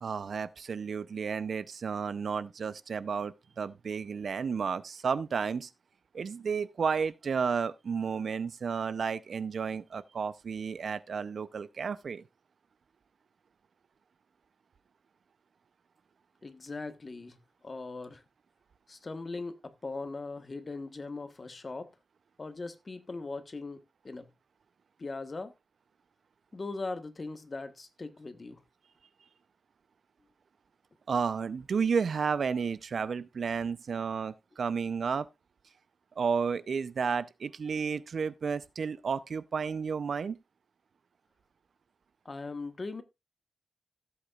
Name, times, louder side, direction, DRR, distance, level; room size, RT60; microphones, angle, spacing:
voice 1, 0.0-5.7 6.1-12.2 31.1-35.3 36.2-40.4, right 6 dB, 70° right, 0.6 m, -32 dB
voice 2, 16.4-18.2 18.9-21.9 22.4-24.3 25.0-25.5 26.5-28.6 42.2-43.0, left 3 dB, 40° left, 1.3 m, -40 dB
15.0 x 8.1 x 2.4 m
wide cardioid pair, 100°, 0 cm